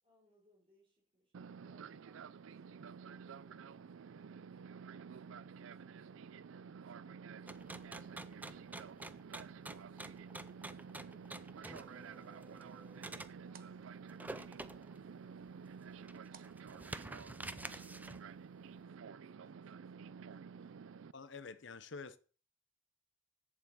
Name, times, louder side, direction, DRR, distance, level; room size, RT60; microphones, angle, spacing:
voice 1, 0.0-9.3 9.6-11.8 13.0-21.0, equal, 25° right, 4.1 m, -75 dB
Fixed-wing aircraft airplane, 1.3-21.1, right 6 dB, 75° right, 0.4 m, -51 dB
sound 1, 7.5-13.3 14.1-15.0 15.5-15.6 16.0-18.3, right 2 dB, 10° right, 0.5 m, -48 dB
sound 2, 12.1-17.5, right 6 dB, 45° right, 1.0 m, -67 dB
voice 2, 21.1-22.2, left 4 dB, 65° left, 0.8 m, -48 dB
8.3 x 7.5 x 7.1 m
head